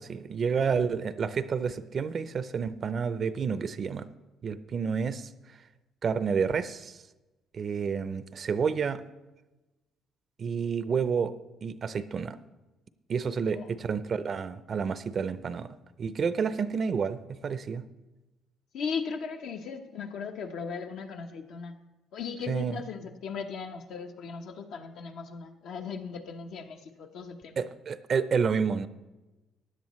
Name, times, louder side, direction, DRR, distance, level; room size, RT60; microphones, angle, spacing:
voice 1, 0.0-4.1 4.4-5.3 6.0-7.0 7.5-9.0 10.4-11.3 11.6-12.4 13.1-17.8 22.5-22.8 27.6-28.9, right 6 dB, 50° right, 14 dB, 0.5 m, -29 dB
voice 2, 18.7-21.7 22.1-27.7, left 5 dB, 75° left, 4 dB, 1.0 m, -37 dB
16.0 x 10.5 x 3.1 m, 1.1 s
supercardioid pair, 80°, 0 cm